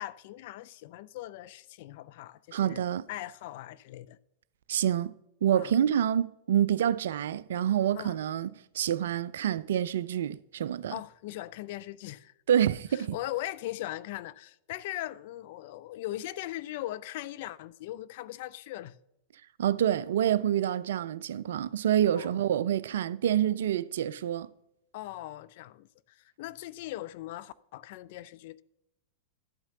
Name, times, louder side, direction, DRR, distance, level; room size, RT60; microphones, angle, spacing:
voice 1, 0.0-4.2 5.5-5.7 7.9-8.2 10.9-12.3 12.9-19.0 22.2-22.3 24.9-28.6, left 15 dB, 50° left, 0.3 m, -40 dB
voice 2, 2.5-3.0 4.7-5.1 5.4-10.9 12.5-13.1 19.6-24.5, right 10 dB, 60° right, 0.3 m, -27 dB
11.5 x 8.7 x 2.8 m
figure-of-eight pair, 90°, 0 cm